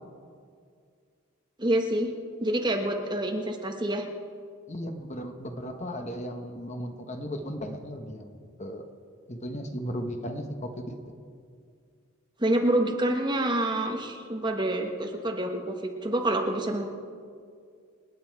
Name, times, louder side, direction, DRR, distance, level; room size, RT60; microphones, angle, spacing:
voice 1, 1.6-2.1 2.4-4.0 12.4-16.9, right 1 dB, 20° right, 3 dB, 1.2 m, -27 dB
voice 2, 4.7-8.8 9.3-11.0, equal, 30° left, 5 dB, 1.0 m, -36 dB
26.5 x 9.5 x 4.6 m, 2.2 s
head